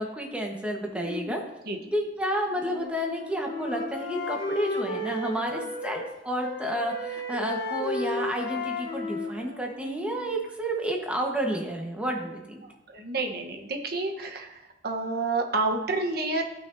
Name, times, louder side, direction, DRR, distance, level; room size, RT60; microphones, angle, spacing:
voice 1, 0.0-1.4 1.9-12.6, right 1 dB, 5° right, 0 dB, 1.3 m, -30 dB
voice 2, 0.9-1.4 1.6-1.8 12.6-16.4, right 3 dB, 60° right, 3 dB, 1.2 m, -30 dB
Wind instrument woodwind instrument, 2.5-6.1 6.4-10.4, left 2 dB, 65° left, 1.4 m, -34 dB
14.5 x 6.0 x 2.7 m, 0.96 s
head